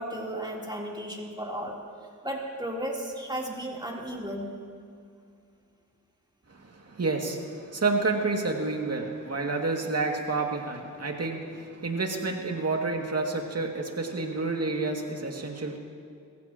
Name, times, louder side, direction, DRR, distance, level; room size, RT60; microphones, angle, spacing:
voice 1, 0.0-1.8 2.2-4.5, right 1 dB, 15° right, -3 dB, 3.6 m, -34 dB
voice 2, 6.7-15.8, right 3 dB, 50° right, 1 dB, 2.4 m, -29 dB
22.5 x 15.0 x 3.0 m, 2.3 s
cardioid pair, 50°, 32 cm